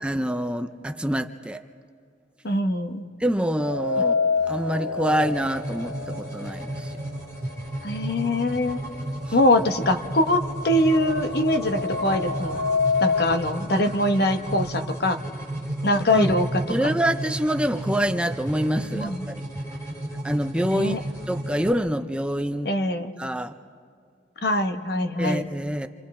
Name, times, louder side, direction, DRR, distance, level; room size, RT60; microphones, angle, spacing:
voice 1, 0.0-1.6 3.2-6.9 16.1-16.3 16.7-19.4 20.2-21.0 21.3-22.7 23.2-23.5 25.2-25.9, equal, 5° right, 8 dB, 0.5 m, -26 dB
voice 2, 2.4-3.0 7.8-8.8 9.3-12.6 13.0-15.2 15.8-16.9 18.9-19.3 20.7-21.0 22.6-23.1 24.4-25.4, left 1 dB, 60° left, 7 dB, 1.1 m, -23 dB
sound 1, 3.6-7.6 8.0-8.1 9.1-9.2 9.5-13.4, left 4 dB, 80° left, 1.2 m, -28 dB
sound 2, 5.1-21.7, right 1 dB, 15° left, 3.2 m, -33 dB
29.5 x 26.5 x 4.3 m, 2.2 s
head